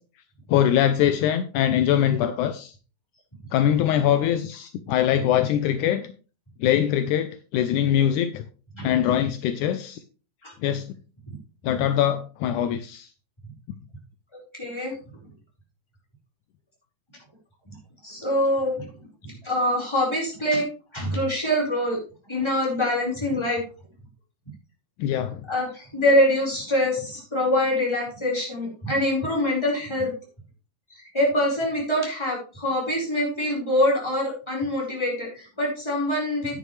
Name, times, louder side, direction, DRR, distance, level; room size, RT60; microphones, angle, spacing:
voice 1, 0.5-2.7 3.5-6.1 6.6-8.4 8.8-10.0 10.6-10.8 11.6-13.1 25.0-25.4, left 10 dB, 80° left, 10 dB, 2.0 m, -22 dB
voice 2, 14.3-14.9 18.0-18.9 19.4-20.7 20.9-22.0 22.3-23.6 25.5-30.1 31.1-36.6, left 1 dB, 10° left, -3 dB, 4.6 m, -24 dB
10.0 x 9.7 x 3.2 m, 0.36 s
omnidirectional pair, 3.6 m